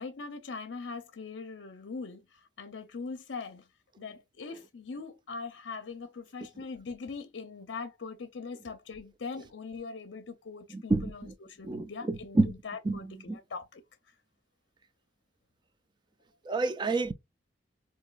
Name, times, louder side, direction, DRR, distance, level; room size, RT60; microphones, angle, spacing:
voice 1, 0.0-3.7 4.0-13.8, left 4 dB, 75° left, 0.5 m, -41 dB
voice 2, 10.7-11.3 11.6-12.5 12.9-13.0 13.3-13.4 16.5-17.1, right 3 dB, 25° right, 0.3 m, -28 dB
4.7 x 2.6 x 2.3 m
head